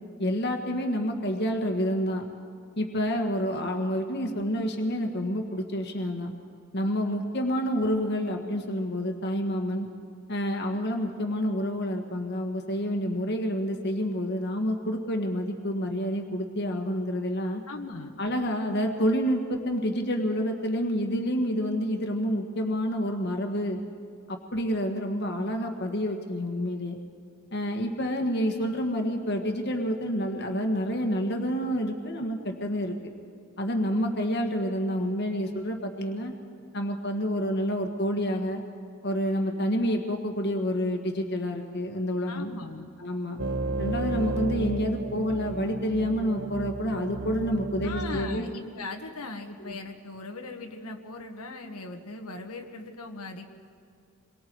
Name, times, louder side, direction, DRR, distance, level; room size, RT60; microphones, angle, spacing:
voice 1, 0.2-2.2 2.8-6.3 6.7-9.9 10.3-17.6 18.2-23.8 24.3-27.0 27.5-32.9 33.6-36.3 36.7-38.6 39.0-42.5 43.0-43.4 43.8-48.4 49.6-49.8, equal, 50° left, 3 dB, 1.7 m, -28 dB
voice 2, 17.7-18.1 42.3-42.9 47.8-53.5, left 3 dB, 80° left, 3 dB, 1.6 m, -39 dB
sound 1, 43.4-48.4, right 2 dB, 50° right, 0.9 m, -32 dB
28.0 x 22.5 x 4.7 m, 2.2 s
head